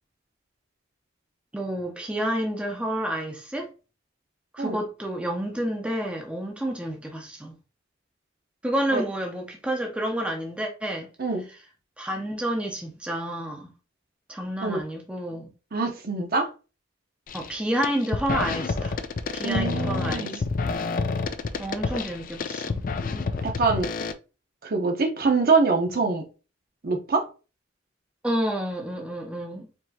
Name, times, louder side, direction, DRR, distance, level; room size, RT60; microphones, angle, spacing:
voice 1, 1.5-3.7 4.5-7.5 8.6-11.1 12.0-13.7 14.3-15.5 17.3-19.0 19.3-20.4 21.6-22.9 23.1-23.3 28.2-29.7, right 1 dB, 5° right, 0.6 m, -29 dB
voice 2, 15.7-16.5 19.4-20.4 23.4-23.9 24.6-26.2 26.8-27.2, right 4 dB, 50° right, 0.9 m, -24 dB
sound 1, 17.3-17.5 17.8-24.1, left 4 dB, 45° left, 0.4 m, -29 dB
4.6 x 2.8 x 2.8 m
head